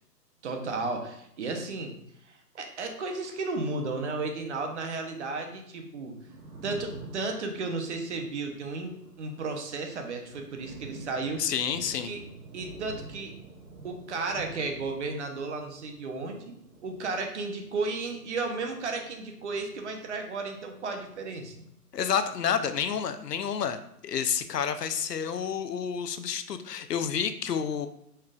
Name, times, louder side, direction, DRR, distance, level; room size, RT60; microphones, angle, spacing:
voice 1, 0.4-1.9 2.3-6.1 6.6-11.5 12.0-12.2 12.5-13.3 13.8-16.5 16.8-21.5, right 3 dB, 45° right, 4 dB, 0.8 m, -34 dB
Thunder, 6.0-20.5 20.7-22.0, right 3 dB, 65° right, 1.5 m, -49 dB
voice 2, 11.4-12.1 21.9-27.9, left 7 dB, 80° left, 10 dB, 0.6 m, -29 dB
4.8 x 4.4 x 2.4 m, 0.75 s
hypercardioid pair, 140°, 48 cm